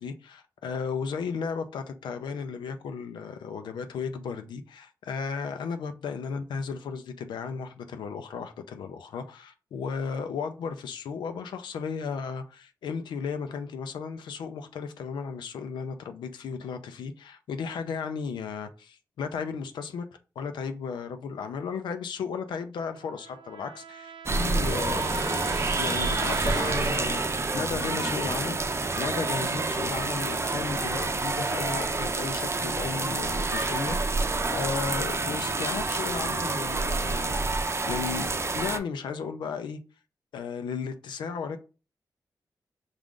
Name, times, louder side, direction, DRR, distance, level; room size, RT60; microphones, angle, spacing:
voice 1, 0.0-20.1 20.4-28.6 29.0-38.3 38.5-39.8 40.3-41.6, left 5 dB, 85° left, 0.5 m, -35 dB
Trumpet, 22.9-28.1, right 6 dB, 90° right, 0.5 m, -41 dB
sound 1, 24.3-38.8, right 3 dB, 35° right, 0.6 m, -28 dB
5.0 x 2.4 x 3.7 m
cardioid pair, 55°, 8 cm